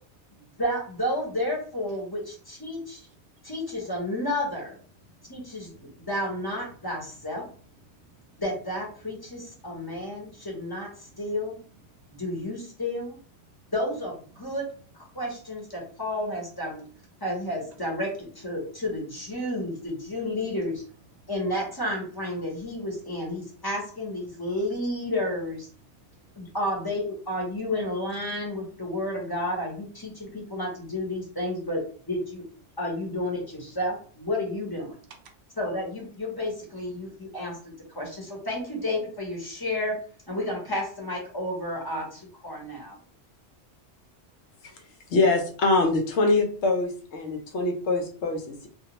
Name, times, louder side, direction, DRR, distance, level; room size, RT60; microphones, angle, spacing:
voice 1, 0.6-3.0 3.4-4.7 5.3-7.4 8.4-11.6 12.1-13.2 13.7-14.6 15.1-16.8 17.2-20.8 21.3-25.7 26.4-31.8 32.1-32.4 32.8-35.0 35.6-40.0 40.3-43.0, left 1 dB, 20° left, -2 dB, 0.8 m, -31 dB
voice 2, 5.1-6.1 7.8-8.4 9.6-10.5 11.0-11.2 11.9-12.2 13.5-13.7 15.1-15.2 17.1-17.2 21.2-21.3 25.9-26.6, right 2 dB, 75° right, 4 dB, 0.8 m, -58 dB
voice 3, 45.1-48.7, left 3 dB, 85° left, 4 dB, 0.9 m, -24 dB
2.3 x 2.2 x 2.9 m, 0.42 s
omnidirectional pair, 1.1 m